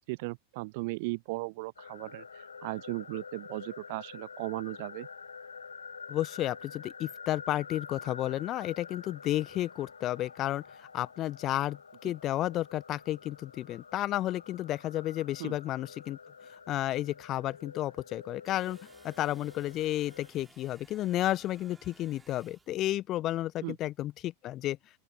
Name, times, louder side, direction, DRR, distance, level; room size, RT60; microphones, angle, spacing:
voice 1, 0.1-5.1 15.4-15.5 23.6-23.7, right 25 dB, 50° right, 0.6 m, -37 dB
sound 1, 1.8-20.3, left 5 dB, 75° left, 7.4 m, -48 dB
voice 2, 6.1-16.2 16.7-18.8 19.0-24.8, left 14 dB, 35° left, 1.3 m, -32 dB
sound 2, 18.5-22.9, right 4 dB, 10° right, 3.1 m, -59 dB
open air
figure-of-eight pair, 90°, 0 cm